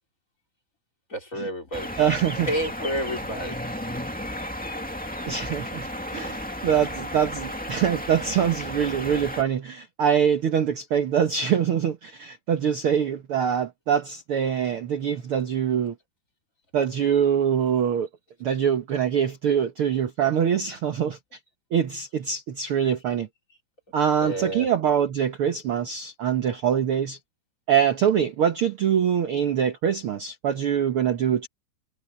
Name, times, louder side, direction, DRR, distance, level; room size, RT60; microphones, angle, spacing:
voice 1, 1.1-1.9 2.5-3.6 24.2-24.7, right 1 dB, 25° left, 4.2 m, -29 dB
sound 1, 1.7-9.4, left 1 dB, 5° left, 1.3 m, -33 dB
voice 2, 2.0-2.5 5.3-5.9 6.1-6.4 6.6-15.9 16.7-18.1 18.4-21.2 21.7-23.3 23.9-27.2 27.7-31.5, right 8 dB, 60° right, 1.6 m, -24 dB
omnidirectional pair, 3.7 m